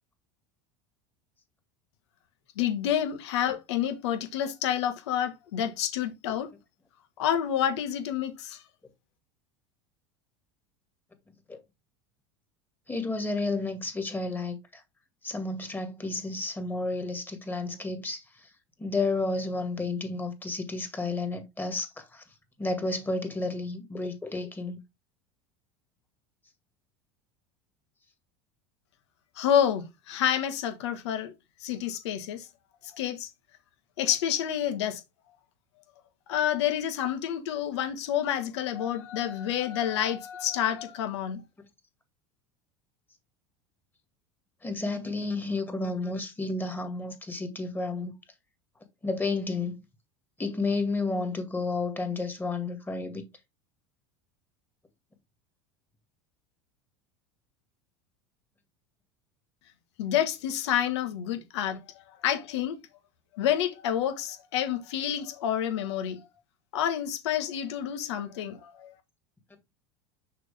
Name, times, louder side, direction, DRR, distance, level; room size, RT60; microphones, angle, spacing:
voice 1, 2.6-6.5 7.2-8.6 29.4-31.3 31.6-32.5 32.9-33.3 34.0-35.0 36.3-41.4 60.0-61.8 62.2-62.8 63.3-66.2 66.7-68.9, left 10 dB, 80° left, 1.5 m, -28 dB
voice 2, 12.9-14.8 15.2-18.2 18.8-22.2 22.6-24.8 44.6-48.2 49.0-49.7 50.4-53.3, left 3 dB, 15° left, 2.0 m, -31 dB
6.3 x 4.6 x 3.4 m
supercardioid pair, 100°, 14 cm